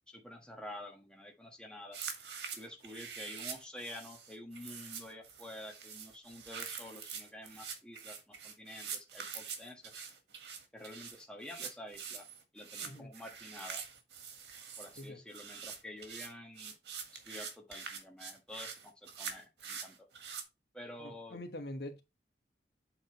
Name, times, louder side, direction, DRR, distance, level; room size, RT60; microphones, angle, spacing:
voice 1, 0.1-2.0 2.5-10.0 10.7-12.3 12.5-13.8 14.8-16.7 17.3-20.1 20.7-21.4, left 1 dB, 5° left, 1.4 m, -49 dB
sound 1, 1.9-20.4, right 6 dB, 75° right, 1.7 m, -45 dB
voice 2, 12.8-13.1 15.0-15.2 21.0-22.0, left 1 dB, 65° left, 1.2 m, -44 dB
8.1 x 3.7 x 4.6 m
head